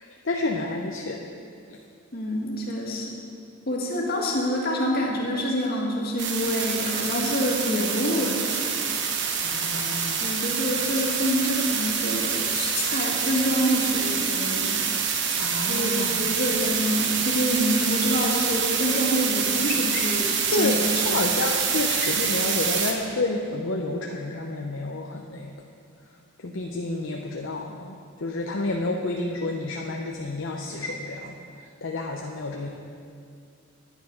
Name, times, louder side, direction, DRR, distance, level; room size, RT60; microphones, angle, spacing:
voice 1, 0.2-1.2 9.4-10.3 15.4-16.3 20.5-25.5 26.4-28.0 28.2-31.3 31.8-32.7, left 2 dB, 65° left, 0 dB, 0.8 m, -29 dB
voice 2, 2.1-3.1 3.7-8.7 10.2-14.9 15.7-21.2, equal, 45° left, -2 dB, 1.9 m, -27 dB
sound 1, 6.2-22.9, right 6 dB, 60° right, 1.0 m, -26 dB
10.5 x 9.9 x 5.3 m, 2.3 s
head